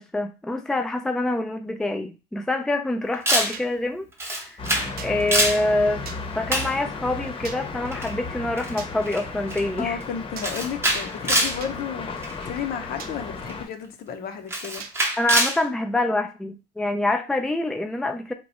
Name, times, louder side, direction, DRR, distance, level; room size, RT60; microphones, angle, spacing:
voice 1, 0.0-4.6 5.0-6.0 6.4-10.0 15.2-18.3, left 2 dB, 5° left, 0.4 m, -26 dB
Camera, 3.3-3.6 4.2-4.9 5.2-5.6 6.5-6.8 7.9-8.1 8.6-8.7 9.1-9.2 9.5-9.8 10.4-11.6 12.2-12.4 13.5-13.6 14.5-15.6, right 1 dB, 15° right, 0.8 m, -24 dB
sound 1, 3.5-3.7 5.0-5.1 6.1-6.2 7.4-7.6 8.8-8.9 10.4-10.5 11.6-11.8 13.0-13.2 14.8-15.0, right 7 dB, 60° right, 0.5 m, -39 dB
sound 2, 4.6-13.6, left 3 dB, 35° left, 0.9 m, -35 dB
voice 2, 9.8-12.2 12.4-14.8, left 7 dB, 65° left, 0.8 m, -32 dB
2.9 x 2.3 x 4.1 m
cardioid pair, 110°, 17 cm